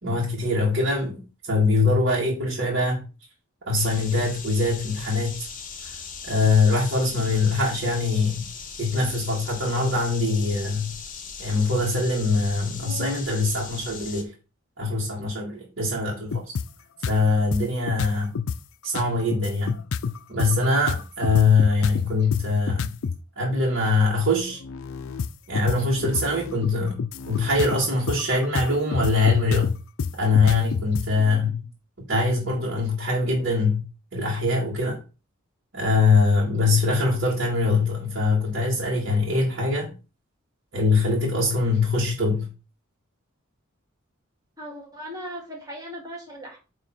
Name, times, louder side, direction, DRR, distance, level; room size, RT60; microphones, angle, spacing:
voice 1, 0.0-3.1 3.7-5.4 5.8-6.0 6.2-8.5 8.8-10.9 11.4-14.3 14.8-16.5 17.1-18.3 18.8-19.8 20.3-22.9 23.4-24.6 25.5-29.7 30.2-31.6 32.0-33.8 34.1-35.0 35.7-39.9 40.7-42.5, left 3 dB, 55° right, 1.9 m, -23 dB
sound 1, 3.8-14.2, left 6 dB, 40° left, 0.9 m, -39 dB
sound 2, 16.3-16.7 17.0-17.2 17.5-18.6 19.0-23.2 24.5-31.1, left 5 dB, 70° left, 0.4 m, -28 dB
voice 2, 31.2-31.5 44.6-46.6, equal, 20° right, 1.9 m, -38 dB
9.1 x 3.1 x 4.2 m
head